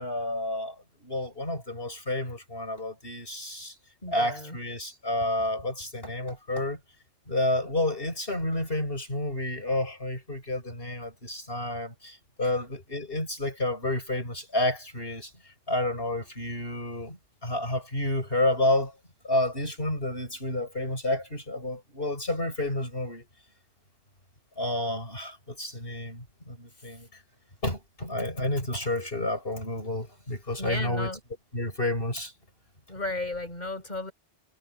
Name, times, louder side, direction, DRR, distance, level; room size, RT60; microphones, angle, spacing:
voice 1, 0.0-3.8 4.1-6.8 7.3-19.0 19.2-23.3 24.6-27.2 27.6-31.1 31.5-32.3, left 1 dB, 55° left, 7.5 m, -30 dB
voice 2, 4.0-4.6 30.6-31.2 32.9-34.1, left 2 dB, 40° left, 7.5 m, -34 dB
omnidirectional pair, 1.1 m